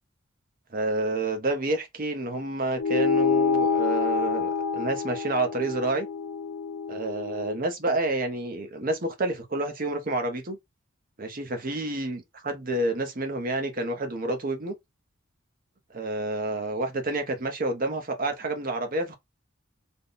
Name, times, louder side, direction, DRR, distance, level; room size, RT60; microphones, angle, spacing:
voice 1, 0.7-6.1 6.9-10.6 11.2-14.7 15.9-19.2, right 2 dB, 40° right, 0.8 m, -29 dB
sound 1, 2.8-7.6, left 6 dB, 75° left, 0.6 m, -27 dB
3.6 x 2.2 x 3.9 m
head